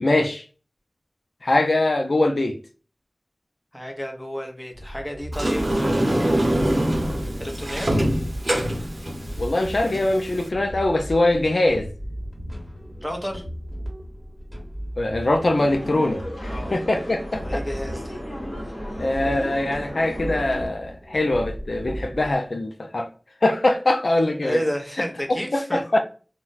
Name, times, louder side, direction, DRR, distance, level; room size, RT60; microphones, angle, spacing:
voice 1, 0.0-0.4 1.4-2.6 9.4-11.9 15.0-17.6 19.0-23.1 23.4-24.6 25.5-26.0, left 2 dB, 75° left, 0.3 m, -22 dB
voice 2, 3.7-6.8 7.4-7.9 13.0-13.4 16.5-16.7 17.4-18.2 24.4-25.8, equal, 10° left, 0.8 m, -31 dB
sound 1, 4.7-22.3, equal, 10° right, 1.2 m, -36 dB
Sliding door, 5.3-10.5, right 1 dB, 60° right, 0.7 m, -24 dB
sound 2, 15.6-20.7, equal, 45° left, 1.1 m, -35 dB
2.3 x 2.1 x 3.9 m
wide cardioid pair, 45°, 0 cm